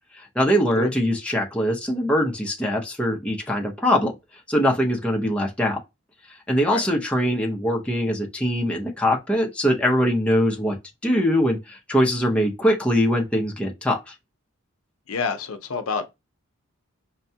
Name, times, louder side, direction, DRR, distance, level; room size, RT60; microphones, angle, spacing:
voice 1, 0.1-4.1 4.5-5.8 6.5-10.8 11.0-14.1, equal, 5° left, 0.6 m, -22 dB
voice 2, 15.1-16.1, left 4 dB, 70° left, 0.6 m, -28 dB
5.4 x 2.2 x 2.7 m
head